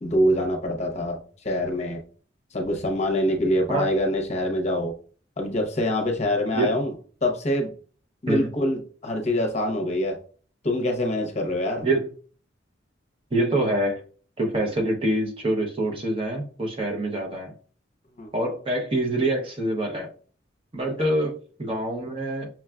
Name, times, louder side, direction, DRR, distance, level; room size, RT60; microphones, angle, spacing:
voice 1, 0.0-2.0 2.5-4.9 5.4-6.9 7.2-7.7 8.2-10.2 10.6-11.9 18.2-18.3, left 1 dB, 35° left, 2 dB, 0.7 m, -25 dB
voice 2, 13.3-14.0 14.4-17.5 18.3-20.1 20.7-21.3 21.6-22.5, right 1 dB, 30° right, 1 dB, 0.6 m, -25 dB
5.9 x 2.3 x 2.2 m, 0.42 s
head